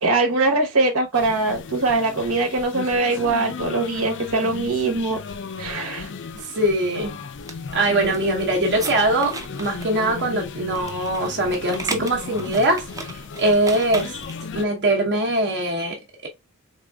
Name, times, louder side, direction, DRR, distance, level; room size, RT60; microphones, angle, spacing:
voice 1, 0.0-5.2 5.6-6.1, right 3 dB, 80° right, 1.2 m, -22 dB
sound 1, 1.1-14.7, left 5 dB, 60° left, 0.5 m, -35 dB
voice 2, 6.3-7.2 7.7-14.2 14.5-16.3, right 1 dB, 55° right, 1.0 m, -22 dB
sound 2, 7.3-14.5, right 3 dB, 15° right, 0.6 m, -36 dB
3.6 x 3.5 x 2.3 m
head